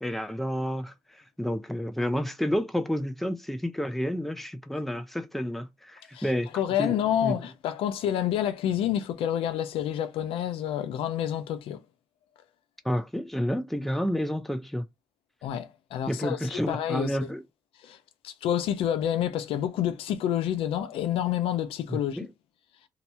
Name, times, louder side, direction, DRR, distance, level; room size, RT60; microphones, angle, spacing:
voice 1, 0.0-6.5 6.8-7.0 7.2-7.3 12.8-14.8 16.1-17.4 21.9-22.3, equal, ahead, 0.6 m, -30 dB
voice 2, 6.5-11.8 15.4-17.1 17.8-18.0 18.2-22.3, left 10 dB, 85° left, 0.5 m, -28 dB
2.9 x 2.2 x 4.1 m
cardioid pair, 75°, 9 cm